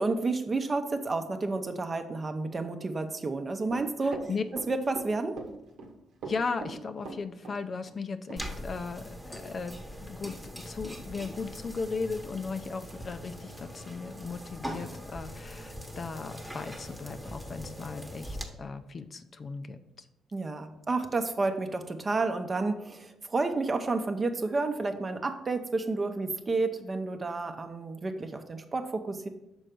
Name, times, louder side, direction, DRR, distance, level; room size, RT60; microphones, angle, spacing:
voice 1, 0.0-4.3 4.7-5.4 20.3-29.3, right 3 dB, 30° right, 7 dB, 0.7 m, -30 dB
Run, 3.7-5.1 5.4-5.9 6.2-7.6 7.9-8.0 8.3-8.4, right 4 dB, 85° right, 1.1 m, -40 dB
voice 2, 4.0-4.4 6.3-10.4 10.7-20.1, left 4 dB, 40° left, 9 dB, 0.5 m, -37 dB
sound 1, 8.4-18.4, equal, 5° right, 1.1 m, -42 dB
6.2 x 4.4 x 5.2 m, 0.91 s
cardioid pair, 90°, 0 cm